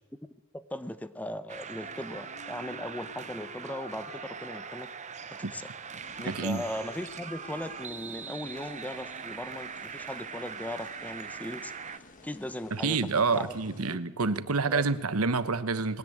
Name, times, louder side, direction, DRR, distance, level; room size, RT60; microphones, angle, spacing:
voice 1, 0.5-4.9 5.5-5.7 6.2-11.7 12.2-13.0 13.3-13.6 13.9-14.3 14.7-14.9, left 1 dB, 5° left, 12 dB, 0.8 m, -38 dB
sound 1, 1.5-12.0, right 6 dB, 35° right, 0.9 m, -41 dB
Wind instrument woodwind instrument, 1.8-9.9, left 2 dB, 80° left, 2.6 m, -53 dB
sound 2, 5.9-13.9, left 2 dB, 35° left, 1.6 m, -53 dB
voice 2, 6.2-6.6 12.7-16.0, right 4 dB, 75° right, 13 dB, 1.1 m, -28 dB
21.0 x 17.5 x 8.7 m, 1.1 s
head